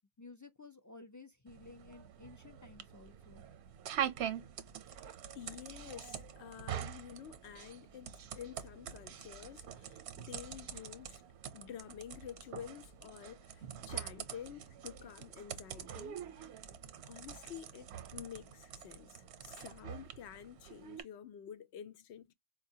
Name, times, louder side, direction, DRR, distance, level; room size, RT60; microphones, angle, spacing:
voice 1, 0.2-3.4, left 3 dB, 30° left, 0.3 m, -54 dB
sound 1, 1.5-21.0, right 9 dB, 85° right, 0.9 m, -45 dB
voice 2, 5.3-11.2 11.5-16.2 17.0-22.3, left 9 dB, 85° left, 0.8 m, -50 dB
4.4 x 2.1 x 2.6 m
omnidirectional pair, 1.1 m